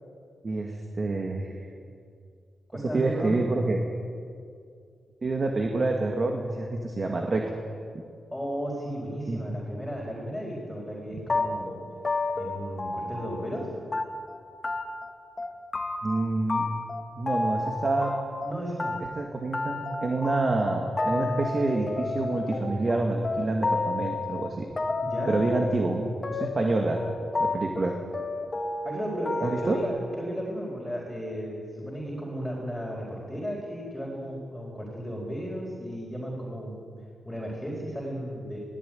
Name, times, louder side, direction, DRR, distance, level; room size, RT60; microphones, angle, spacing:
voice 1, 0.4-1.5 2.7-3.9 5.2-7.4 9.3-9.4 11.1-11.2 16.0-16.7 17.2-18.1 19.2-24.7 25.3-27.0 27.4-28.0 29.4-29.8, right 2 dB, 35° right, 2 dB, 2.1 m, -27 dB
voice 2, 2.7-3.3 8.3-11.7 12.3-13.7 18.5-19.0 25.0-25.4 28.8-36.8 37.2-38.6, equal, 5° left, -4 dB, 4.7 m, -34 dB
sound 1, 11.3-13.6 13.9-14.4 14.6-15.1 15.4-16.2 16.5-18.5 18.8-29.8, left 3 dB, 25° left, 2.0 m, -31 dB
22.0 x 18.0 x 9.3 m, 2.3 s
wide cardioid pair, 130°, 0 cm